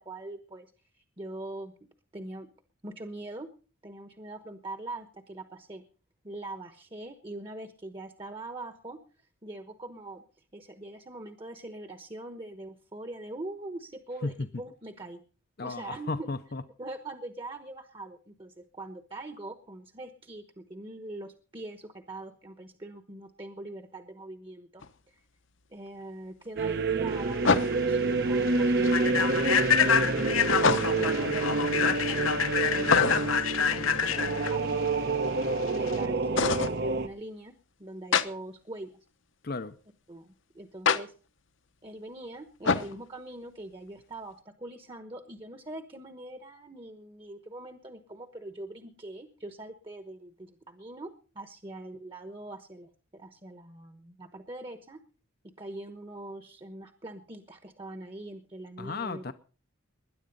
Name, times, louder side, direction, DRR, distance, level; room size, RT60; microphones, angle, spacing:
voice 1, 0.0-1.7 2.1-2.5 2.8-3.5 3.8-5.8 6.2-15.2 15.6-16.3 16.8-25.2 25.7-30.5 31.0-34.9 35.7-37.5 37.8-39.0 40.1-41.1 41.8-55.0 55.4-59.2, right 2 dB, 25° right, 1.1 m, -43 dB
voice 2, 15.6-16.6 39.4-39.8 58.8-59.3, left 3 dB, 45° left, 0.7 m, -34 dB
sound 1, 24.8-24.9 27.4-28.0 30.5-31.2 32.8-33.5 36.4-36.8 38.1-38.3 40.9-41.0 42.6-43.0, left 5 dB, 65° left, 1.0 m, -25 dB
sound 2, 26.6-37.1, right 3 dB, 50° right, 0.9 m, -28 dB
Human voice / Train, 27.2-36.0, left 7 dB, 85° left, 1.3 m, -28 dB
20.5 x 10.5 x 5.4 m
head